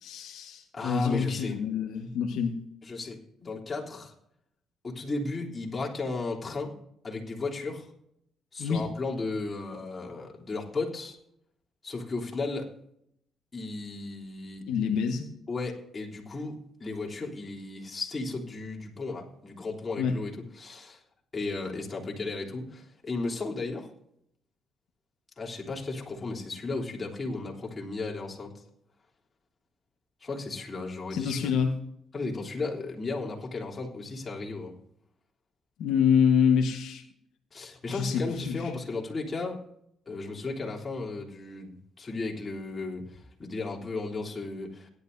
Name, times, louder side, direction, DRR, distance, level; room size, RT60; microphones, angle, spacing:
voice 1, 0.0-2.5 8.6-8.9 14.7-15.3 20.0-20.2 31.1-31.8 35.8-37.0 37.9-38.7, left 7 dB, 85° left, 3 dB, 1.5 m, -26 dB
voice 2, 0.7-1.6 2.8-4.1 4.8-6.7 7.0-7.9 8.5-11.2 11.8-12.7 13.5-14.7 15.5-21.0 21.3-23.9 25.4-28.5 30.2-31.5 32.1-34.7 37.5-39.6 40.1-41.7 42.0-44.9, left 3 dB, 35° left, -1 dB, 3.4 m, -35 dB
17.5 x 11.5 x 2.7 m, 0.73 s
cardioid pair, 90°, 0 cm